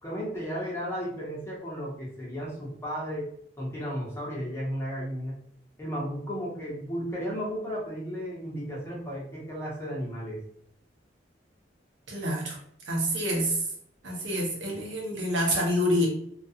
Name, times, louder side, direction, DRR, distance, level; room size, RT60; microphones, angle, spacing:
voice 1, 0.0-3.3 3.6-5.3 5.8-10.4, equal, 15° left, -6 dB, 0.9 m, -34 dB
voice 2, 12.1-12.6 12.9-13.7 14.0-16.1, equal, 90° right, -2 dB, 0.8 m, -27 dB
2.4 x 2.3 x 2.7 m, 0.67 s
head